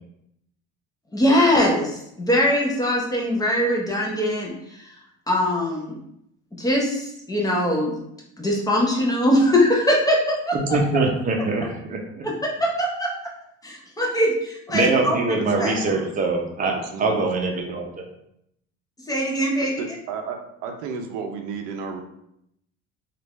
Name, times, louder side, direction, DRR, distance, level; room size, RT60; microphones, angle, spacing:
voice 1, 1.1-4.5 4.8-4.9 5.3-5.9 6.6-7.9 8.4-10.8 12.2-12.3 12.6-13.1 13.6-15.2 15.6-15.7 19.1-20.0, left 1 dB, 10° left, -2 dB, 0.6 m, -21 dB
voice 2, 10.7-12.3 14.7-16.7 17.0-18.0, right 3 dB, 30° right, 1 dB, 0.6 m, -23 dB
voice 3, 15.5-16.1 16.6-17.3 19.8-22.0, right 5 dB, 85° right, 4 dB, 0.6 m, -33 dB
3.3 x 2.4 x 3.1 m, 0.76 s
cardioid pair, 125°, 30 cm